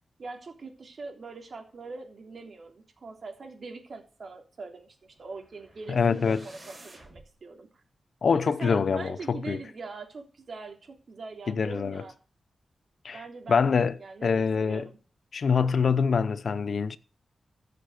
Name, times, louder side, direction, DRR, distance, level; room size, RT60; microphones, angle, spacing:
voice 1, 0.2-7.7 8.3-12.1 13.1-13.7 14.0-15.0, right 4 dB, 60° right, 3.4 m, -42 dB
sound 1, 5.1-7.3, right 2 dB, 35° right, 5.4 m, -51 dB
voice 2, 5.9-6.4 8.2-9.6 11.5-12.0 13.0-13.2 13.5-14.9 15.3-17.0, left 5 dB, 65° left, 0.8 m, -25 dB
14.5 x 6.8 x 6.7 m
cardioid pair, 75°, 0 cm